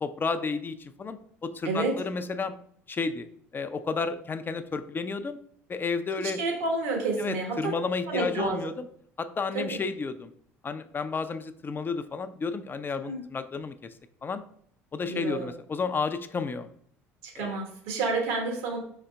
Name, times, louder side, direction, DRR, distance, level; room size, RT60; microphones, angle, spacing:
voice 1, 0.0-2.6 2.9-3.3 3.5-5.4 5.7-6.4 7.2-8.9 9.2-10.3 10.6-13.7 14.2-14.4 14.9-16.7 17.4-17.5, left 4 dB, 25° left, 10 dB, 0.4 m, -31 dB
voice 2, 1.6-2.0 6.2-7.7 8.1-8.7 9.5-9.8 13.0-13.2 15.1-15.5 17.2-18.8, right 3 dB, 70° right, 2 dB, 1.2 m, -30 dB
5.5 x 3.9 x 2.2 m, 0.64 s
figure-of-eight pair, 60°, 8 cm